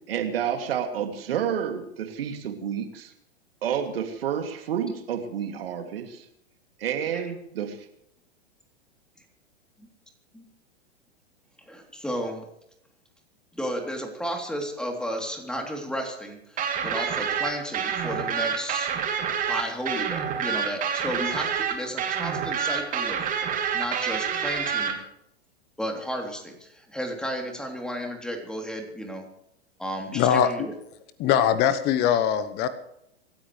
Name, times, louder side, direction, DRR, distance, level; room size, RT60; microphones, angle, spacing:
voice 1, 0.1-3.1 3.6-6.3 6.8-7.8, right 8 dB, 60° right, 5 dB, 2.8 m, -29 dB
voice 2, 11.7-12.4 13.5-18.9 19.5-23.2 23.7-25.0 25.8-29.3 29.8-30.7, equal, ahead, 3 dB, 3.4 m, -33 dB
sound 1, 16.6-24.9, right 7 dB, 25° right, 3.1 m, -27 dB
voice 3, 30.1-30.7 31.2-32.7, left 9 dB, 30° left, 12 dB, 1.2 m, -22 dB
26.0 x 13.0 x 3.3 m, 0.78 s
figure-of-eight pair, 105°, 32 cm